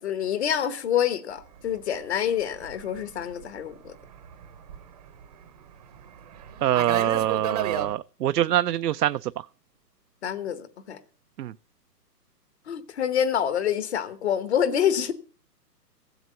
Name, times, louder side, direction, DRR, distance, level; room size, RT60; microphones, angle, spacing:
voice 1, 0.0-3.9 10.2-11.0 12.7-15.1, left 9 dB, 40° left, 1.0 m, -27 dB
Fixed-wing aircraft airplane, 1.4-7.9, right 9 dB, 25° right, 0.8 m, -36 dB
voice 2, 6.6-9.3 11.4-11.5, right 12 dB, 70° right, 0.5 m, -24 dB
15.0 x 8.0 x 6.7 m
hypercardioid pair, 150°, 49 cm